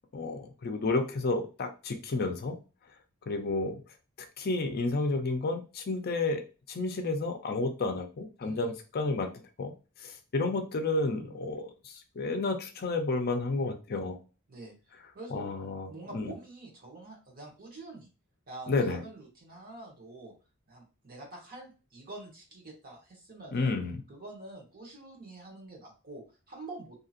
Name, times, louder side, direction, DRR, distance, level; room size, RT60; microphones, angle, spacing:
voice 1, 0.1-2.6 3.3-3.8 4.4-6.4 6.7-9.7 10.0-14.2 15.3-16.3 18.7-19.0 23.5-24.0, left 3 dB, 50° left, 5 dB, 0.5 m, -31 dB
voice 2, 8.4-8.7 14.5-14.7 15.1-15.5 15.9-18.1 18.5-20.3 20.7-23.7 24.1-27.0, right 2 dB, 45° right, -1 dB, 1.1 m, -46 dB
2.8 x 2.7 x 2.4 m, 0.33 s
head